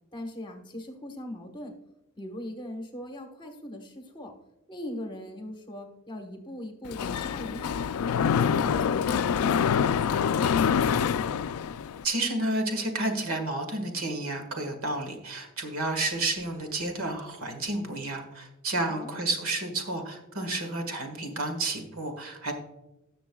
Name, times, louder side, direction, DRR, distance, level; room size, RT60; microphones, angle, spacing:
voice 1, 0.1-1.7 2.2-4.3 4.7-7.8 8.2-10.8 18.9-19.1, left 1 dB, 20° left, 4 dB, 1.2 m, -40 dB
Mechanisms, 6.9-12.0, left 7 dB, 80° left, 0.3 m, -26 dB
voice 2, 12.0-22.5, right 2 dB, 75° right, 5 dB, 1.7 m, -31 dB
17.5 x 6.7 x 2.3 m, 0.94 s
head